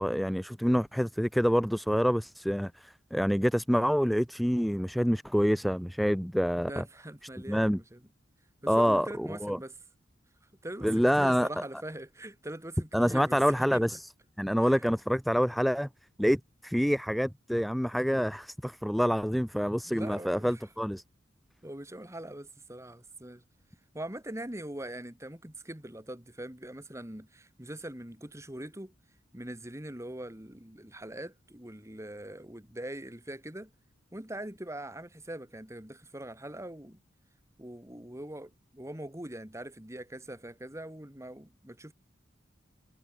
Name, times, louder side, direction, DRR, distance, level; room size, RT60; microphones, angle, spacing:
voice 1, 0.0-6.8 7.5-7.8 8.7-9.6 10.8-11.5 12.9-14.1 14.4-15.9 16.2-21.0, equal, ahead, 0.4 m, -27 dB
voice 2, 6.6-8.0 8.6-9.7 10.6-13.4 13.7-13.8 14.6-14.8 19.9-20.5 21.6-23.4 23.9-28.9 29.3-33.7 34.1-37.0 37.6-41.9, right 1 dB, 15° right, 2.9 m, -42 dB
head